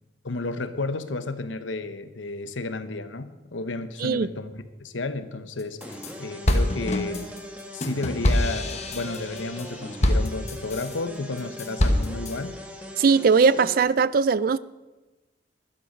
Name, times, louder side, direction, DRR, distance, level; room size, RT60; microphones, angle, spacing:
voice 1, 0.2-7.2 7.7-12.6, left 3 dB, 90° left, 1.0 m, -32 dB
sound 1, 5.6-6.1 6.5-11.0 11.4-12.3, left 1 dB, 35° left, 1.3 m, -25 dB
sound 2, 5.8-13.8, left 1 dB, 5° right, 1.5 m, -40 dB
voice 2, 13.0-14.6, right 5 dB, 50° right, 0.4 m, -19 dB
12.5 x 12.0 x 5.2 m
head